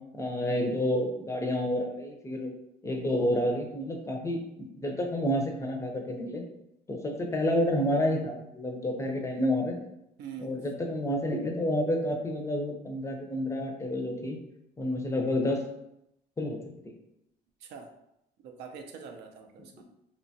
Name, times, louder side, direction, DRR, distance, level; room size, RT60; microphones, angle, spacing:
voice 1, 0.1-2.5 2.8-4.4 4.8-6.4 6.9-9.8 10.4-14.4 14.8-15.6 16.4-16.6 16.8-16.9 19.7-19.8, left 1 dB, 15° left, 2 dB, 0.4 m, -29 dB
voice 2, 10.2-10.6 17.6-17.9 18.4-19.8, right 6 dB, 85° right, 4 dB, 0.4 m, -44 dB
2.8 x 2.2 x 2.6 m, 0.83 s
cardioid pair, 110°, 17 cm